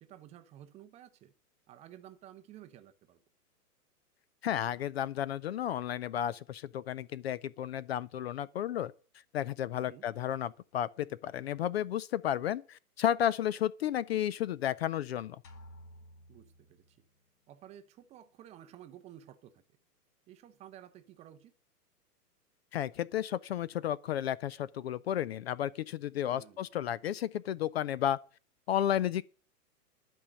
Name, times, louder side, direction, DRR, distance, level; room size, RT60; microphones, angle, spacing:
voice 1, 0.0-1.3 1.7-3.2 9.7-10.1 16.3-17.0 17.5-19.6 20.3-21.5 26.2-26.6, right 11 dB, 15° right, 0.6 m, -53 dB
voice 2, 4.4-8.9 9.3-15.4 22.7-28.2 28.7-29.2, left 11 dB, 45° left, 0.4 m, -32 dB
sound 1, 15.4-17.3, equal, 80° left, 2.4 m, -54 dB
11.5 x 5.3 x 8.4 m
hypercardioid pair, 130°, 47 cm